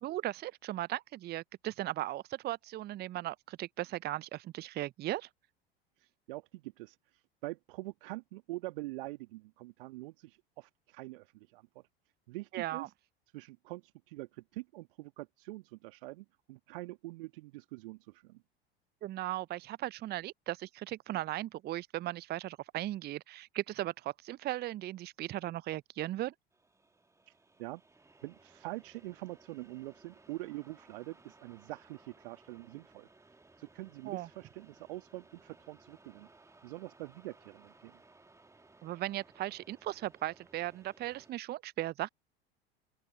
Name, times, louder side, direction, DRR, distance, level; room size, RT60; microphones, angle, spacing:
voice 1, 0.0-5.3 12.5-12.9 19.0-26.3 34.0-34.3 38.8-42.1, right 15 dB, 30° right, 0.8 m, -37 dB
voice 2, 6.0-11.7 12.3-12.9 13.3-18.4 27.3-27.8 28.2-33.1 33.6-36.3 36.6-38.0, right 20 dB, 60° right, 2.2 m, -45 dB
sound 1, 26.5-41.3, right 3 dB, 10° right, 2.2 m, -62 dB
open air
figure-of-eight pair, 75°, 31 cm